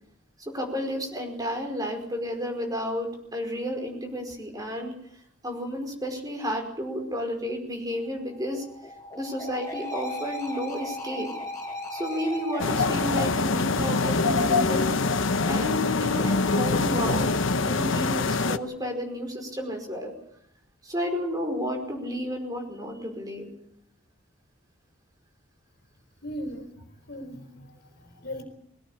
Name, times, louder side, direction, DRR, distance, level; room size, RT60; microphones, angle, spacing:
voice 1, 0.5-4.9 5.4-8.6 9.2-11.3 11.9-14.9 15.5-17.4 17.7-20.1 20.8-23.5, equal, 20° right, 2 dB, 5.2 m, -32 dB
sound 1, 8.0-14.4, left 1 dB, 15° left, 6.7 m, -37 dB
sound 2, 12.6-18.6, left 3 dB, 65° left, 1.0 m, -24 dB
voice 2, 26.2-26.7 27.1-28.4, equal, 50° left, 7 dB, 3.9 m, -38 dB
23.0 x 17.5 x 8.6 m, 0.72 s
head